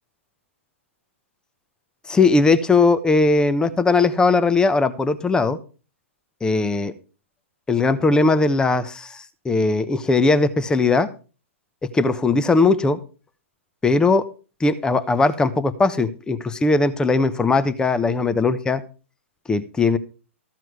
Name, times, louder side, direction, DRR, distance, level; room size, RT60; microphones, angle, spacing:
voice 1, 2.1-5.6 6.4-6.9 7.7-11.1 11.9-13.0 13.8-14.2 14.6-18.8 19.5-20.0, left 3 dB, 10° left, 14 dB, 0.9 m, -19 dB
14.0 x 7.6 x 4.8 m, 0.34 s
hypercardioid pair, 120°, 7 cm